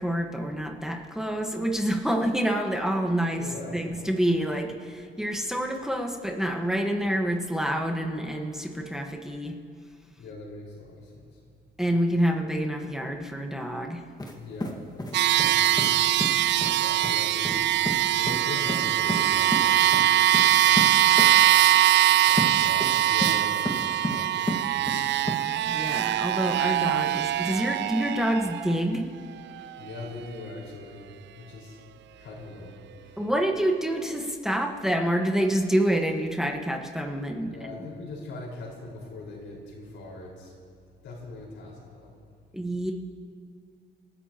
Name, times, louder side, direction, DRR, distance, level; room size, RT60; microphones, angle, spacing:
voice 1, 0.0-3.4 3.7-9.6 11.8-14.0 25.7-29.1 33.2-37.8 42.5-42.9, right 1 dB, ahead, 1 dB, 1.4 m, -27 dB
voice 2, 3.4-3.8 10.2-11.4 14.3-16.0 16.6-17.7 18.1-21.2 22.1-25.2 29.8-31.1 31.3-31.8 32.1-33.2 37.5-40.5 41.0-42.1, left 2 dB, 80° left, -3 dB, 5.1 m, -41 dB
sound 1, 14.2-14.4 14.6-15.5 15.8-15.9 16.2-16.3 16.6-16.8 17.0-17.2 17.4-17.6 17.9-18.0 18.3-18.4 18.7-19.2 19.5-19.7 19.9-20.1 20.3-20.5 20.8-20.9 21.2-21.3 22.4-22.5 22.8-23.4 23.7-24.2 24.5-25.0 25.3-25.4, left 1 dB, 20° left, 1.8 m, -30 dB
sound 2, 15.1-28.8, right 13 dB, 65° right, 0.4 m, -22 dB
28.0 x 13.5 x 3.0 m, 2.2 s
cardioid pair, 90°, 20 cm